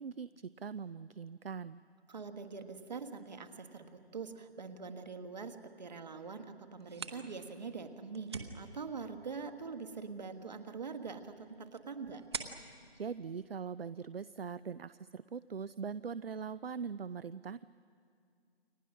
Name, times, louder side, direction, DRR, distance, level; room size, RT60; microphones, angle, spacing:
voice 1, 0.0-1.8 12.9-17.6, right 6 dB, 65° right, 16 dB, 0.5 m, -41 dB
voice 2, 2.1-12.2, right 5 dB, 40° right, 7 dB, 1.6 m, -44 dB
sound 1, 6.7-14.2, right 5 dB, 25° right, 1.0 m, -49 dB
29.0 x 23.5 x 6.3 m, 2.3 s
figure-of-eight pair, 155°, 32 cm